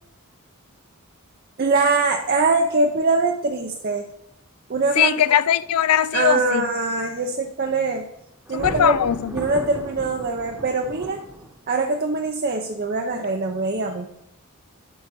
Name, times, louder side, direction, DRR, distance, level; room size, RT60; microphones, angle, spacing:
voice 1, 1.6-4.0 4.7-5.1 6.1-8.1 8.5-9.0 9.3-11.2 11.7-14.1, right 3 dB, 45° right, 0.6 m, -22 dB
voice 2, 5.0-6.7 8.5-9.3, left 9 dB, 85° left, 0.4 m, -20 dB
Thunder, 8.4-11.8, right 1 dB, 5° right, 1.0 m, -36 dB
11.5 x 3.9 x 6.1 m
head